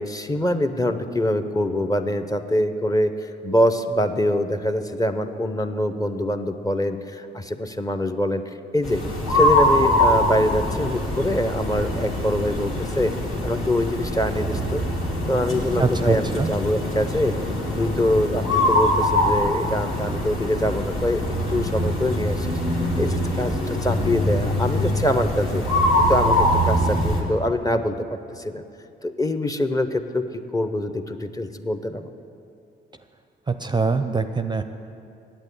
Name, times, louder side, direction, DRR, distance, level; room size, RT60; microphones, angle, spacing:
voice 1, 0.0-8.4 8.7-9.0 9.3-13.1 13.4-14.8 15.3-17.3 17.8-21.2 21.5-22.6 23.0-25.6 26.0-28.6 29.0-32.1, left 1 dB, 15° left, 9 dB, 0.7 m, -24 dB
sound 1, 8.8-27.2, left 1 dB, 85° left, 2.1 m, -23 dB
voice 2, 15.8-16.5 33.5-34.6, right 4 dB, 20° right, 9 dB, 0.5 m, -23 dB
9.0 x 8.2 x 8.2 m, 2.6 s
supercardioid pair, 60°, 20 cm